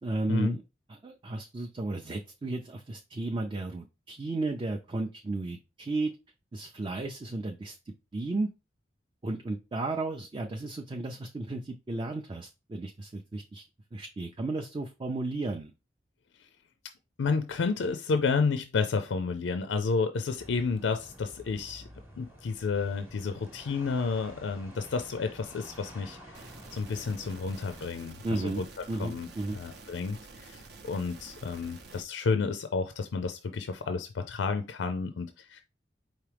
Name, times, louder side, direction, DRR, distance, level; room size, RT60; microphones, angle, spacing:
voice 1, 0.0-0.6 0.9-6.1 6.5-8.5 9.2-13.6 13.9-15.7 28.2-29.6, right 2 dB, 25° right, 0.4 m, -34 dB
voice 2, 17.2-21.9 22.2-28.6 29.0-29.3 29.5-35.6, left 4 dB, 90° left, 0.4 m, -31 dB
sound 1, 20.4-27.9, equal, 10° right, 1.0 m, -50 dB
sound 2, 26.3-32.0, right 3 dB, 60° right, 0.7 m, -49 dB
4.8 x 3.1 x 3.3 m
head